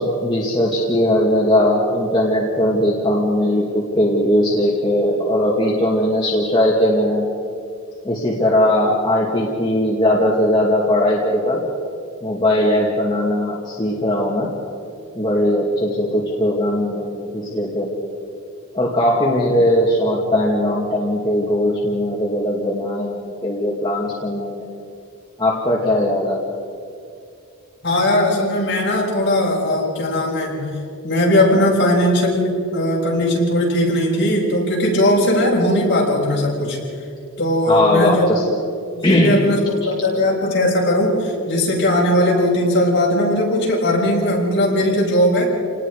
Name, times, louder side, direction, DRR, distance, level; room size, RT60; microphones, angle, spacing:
voice 1, 0.0-7.3 8.0-11.6 12.2-14.5 15.1-17.9 18.7-24.7 25.4-26.4 37.7-38.6 39.0-39.4, left 1 dB, 20° left, -5 dB, 2.5 m, -19 dB
voice 2, 27.8-30.7 31.0-36.8 37.4-38.3 38.9-45.5, left 1 dB, 50° left, -3 dB, 6.3 m, -18 dB
29.0 x 20.0 x 5.0 m, 2.5 s
head